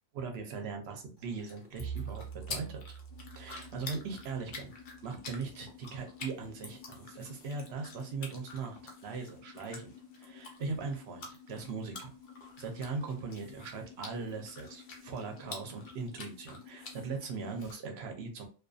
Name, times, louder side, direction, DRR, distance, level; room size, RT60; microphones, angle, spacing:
voice 1, 0.1-2.9 3.3-4.7 5.0-12.1 12.6-18.5, right 4 dB, 75° right, 4 dB, 0.9 m, -40 dB
sound 1, 1.2-17.8, left 4 dB, 55° left, 0.7 m, -49 dB
Bowed string instrument, 1.7-5.9, right 7 dB, 15° right, 1.0 m, -46 dB
sound 2, 3.1-17.6, left 7 dB, 30° left, 1.2 m, -54 dB
2.5 x 2.4 x 2.3 m, 0.35 s
omnidirectional pair, 1.1 m